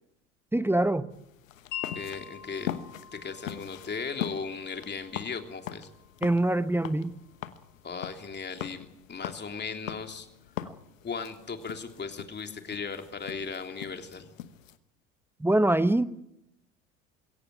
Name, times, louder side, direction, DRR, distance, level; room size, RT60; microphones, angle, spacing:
voice 1, 0.5-1.1 6.2-7.2 15.4-16.0, right 1 dB, 5° right, 14 dB, 1.0 m, -24 dB
sound 1, 1.1-14.8, left 11 dB, 85° left, 1.3 m, -42 dB
Wind chime, 1.7-7.8, left 10 dB, 50° left, 5.7 m, -46 dB
voice 2, 1.9-2.8 3.1-5.9 7.8-10.3 11.0-14.3, left 5 dB, 25° left, 6 dB, 3.2 m, -37 dB
22.0 x 17.0 x 9.5 m, 0.83 s
hypercardioid pair, 75°, 39 cm